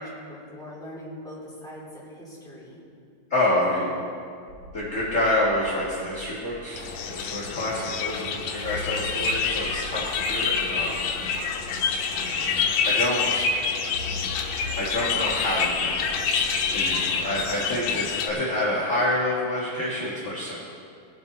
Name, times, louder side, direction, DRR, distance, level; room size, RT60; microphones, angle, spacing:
voice 1, 0.0-2.8, equal, ahead, -7 dB, 2.4 m, -41 dB
voice 2, 3.3-3.9 4.7-11.1 12.8-13.6 14.8-16.1 16.7-20.7, left 1 dB, 35° left, -7 dB, 1.4 m, -27 dB
sound 1, 4.5-7.7 8.1-8.2 8.6-13.1 13.9-18.2, left 1 dB, 60° right, 1.1 m, -43 dB
sound 2, 6.7-18.3, left 5 dB, 85° left, 2.6 m, -27 dB
19.5 x 7.3 x 4.1 m, 2.3 s
omnidirectional pair, 3.8 m